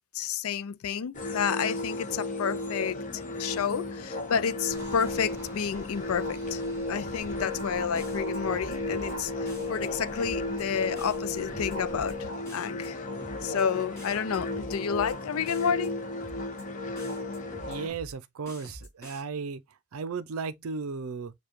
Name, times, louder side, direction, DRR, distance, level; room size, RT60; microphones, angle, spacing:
voice 1, 0.1-6.6 6.9-13.0 13.4-15.9, left 7 dB, 80° left, 0.4 m, -30 dB
sound 1, 1.1-17.9, left 2 dB, 35° left, 0.9 m, -34 dB
sound 2, 4.7-12.2, right 1 dB, 10° right, 1.2 m, -48 dB
sound 3, 7.2-7.6 8.0-9.1 9.5-9.9 10.2-10.6 11.0-12.1 12.4-12.9 13.2-13.6 14.0-15.1 15.5-15.9 16.2-16.6 16.9-18.1 18.4-19.2, equal, 10° left, 3.6 m, -46 dB
voice 2, 17.7-19.6 19.9-21.3, right 5 dB, 80° right, 0.5 m, -35 dB
6.8 x 2.3 x 2.9 m
head